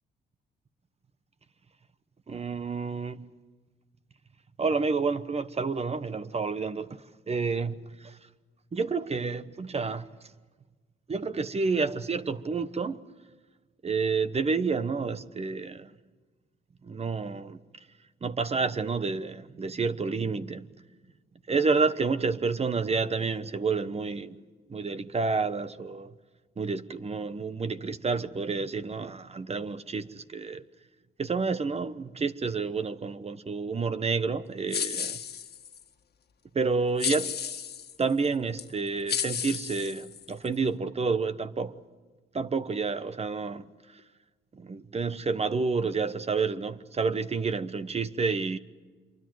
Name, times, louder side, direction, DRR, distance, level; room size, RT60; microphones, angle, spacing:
voice 1, 2.3-3.2 4.6-8.2 8.7-10.1 11.1-13.0 13.8-15.9 16.8-17.6 18.2-20.7 21.5-24.4 24.7-26.1 26.6-30.6 31.2-35.2 36.5-37.3 38.0-41.7 42.3-44.0 44.5-48.6, right 4 dB, 30° right, 1.1 m, -29 dB
sound 1, 34.7-35.8 37.0-38.0 38.6-38.7 39.1-40.5, left 8 dB, 55° left, 1.7 m, -33 dB
26.0 x 23.5 x 7.9 m
cardioid pair, 90°, 20 cm